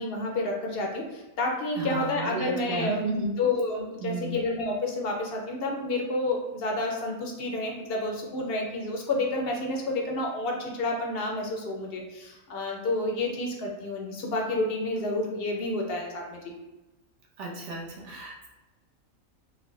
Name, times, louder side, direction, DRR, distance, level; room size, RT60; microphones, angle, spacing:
voice 1, 0.0-16.4, left 2 dB, 60° left, 1 dB, 0.6 m, -30 dB
voice 2, 1.8-3.3 4.0-4.4 17.4-18.5, right 3 dB, 60° right, -2 dB, 1.0 m, -33 dB
3.9 x 2.2 x 3.1 m, 1.0 s
omnidirectional pair, 1.4 m